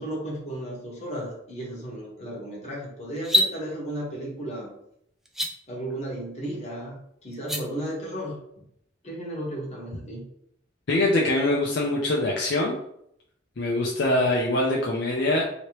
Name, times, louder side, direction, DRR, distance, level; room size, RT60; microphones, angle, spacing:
voice 1, 0.0-4.7 5.7-8.6 9.0-10.3, right 1 dB, 35° left, -4 dB, 1.2 m, -34 dB
sound 1, 3.2-3.5 5.2-5.5 7.3-7.6, equal, ahead, 0.3 m, -23 dB
voice 2, 10.9-12.8 13.6-15.4, left 1 dB, 65° left, -2 dB, 0.6 m, -23 dB
3.1 x 2.9 x 3.0 m, 0.72 s
head